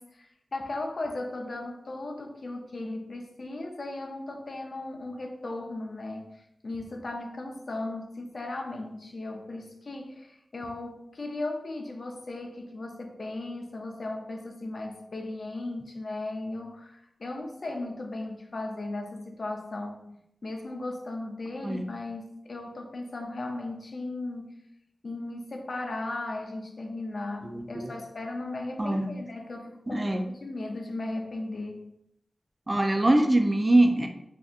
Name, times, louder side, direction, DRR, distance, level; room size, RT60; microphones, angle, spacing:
voice 1, 0.0-20.1 20.4-24.4 25.0-31.9, left 2 dB, 60° left, 2 dB, 0.5 m, -36 dB
voice 2, 27.4-27.9 28.8-29.1 29.9-30.2 32.7-34.1, right 1 dB, 25° right, 4 dB, 0.3 m, -23 dB
3.4 x 2.7 x 2.4 m, 0.79 s
wide cardioid pair, 75°, 0 cm